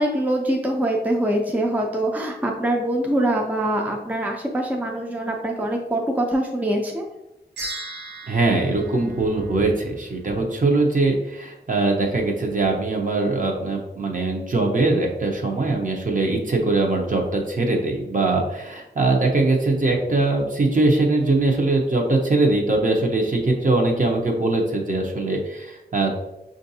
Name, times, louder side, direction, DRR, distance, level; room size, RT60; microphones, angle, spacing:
voice 1, 0.0-7.1, right 1 dB, 10° right, 1 dB, 0.4 m, -24 dB
sound 1, 7.6-10.0, right 2 dB, 80° right, 0.9 m, -37 dB
voice 2, 8.3-26.1, right 2 dB, 50° right, 1 dB, 0.8 m, -21 dB
5.5 x 2.5 x 2.7 m, 0.92 s
wide cardioid pair, 95°, 18 cm